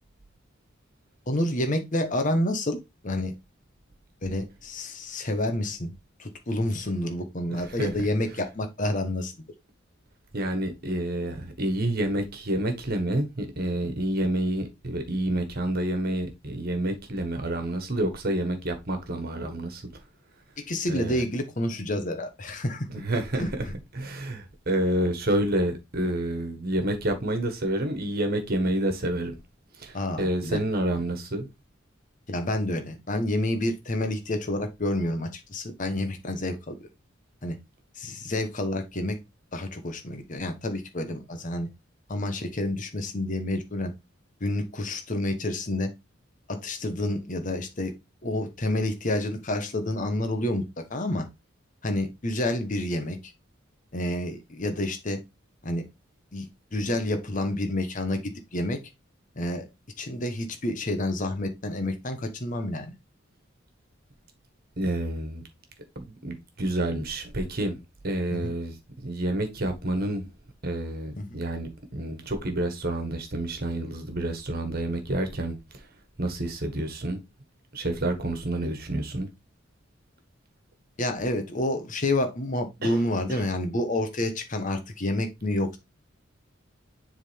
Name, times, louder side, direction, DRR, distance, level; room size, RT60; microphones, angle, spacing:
voice 1, 1.3-3.3 4.2-5.9 6.2-9.3 20.6-22.9 23.3-23.7 29.9-30.6 32.3-36.8 37.4-37.6 38.0-39.2 39.5-41.7 42.1-43.9 44.4-45.9 46.5-47.9 48.2-51.3 51.8-53.2 53.9-55.2 55.6-55.9 56.3-58.8 59.4-59.6 60.0-62.9 68.3-68.5 71.2-71.4 81.0-85.8, left 1 dB, 40° left, 1.1 m, -29 dB
voice 2, 7.5-7.9 10.3-20.0 20.9-21.2 22.9-23.6 23.9-29.3 29.7-31.5 64.8-65.4 65.9-68.8 69.0-70.3 70.6-75.9 76.2-77.2 77.7-79.3 82.8-83.0 83.3-83.4, right 1 dB, 50° right, 1.5 m, -29 dB
7.1 x 3.7 x 3.5 m
head